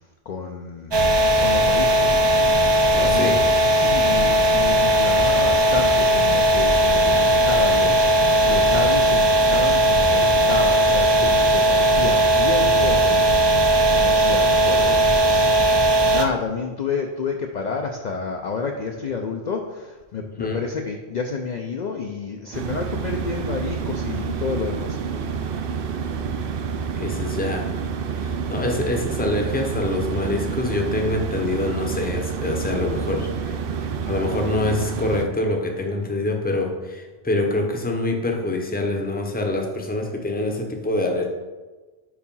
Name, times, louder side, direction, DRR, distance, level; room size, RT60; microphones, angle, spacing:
voice 1, 0.3-1.0 1.4-2.3 3.0-3.4 3.7-25.0, left 5 dB, 55° left, 3 dB, 0.5 m, -30 dB
sound 1, 0.9-16.2, right 1 dB, 35° right, 0.4 m, -18 dB
voice 2, 2.9-3.4 20.4-20.6 27.0-27.7 28.2-33.5 34.1-41.3, left 2 dB, 10° left, 2 dB, 0.7 m, -25 dB
sound 2, 22.5-35.3, right 6 dB, 65° right, 0.7 m, -28 dB
4.8 x 4.8 x 5.4 m, 1.3 s
omnidirectional pair, 1.1 m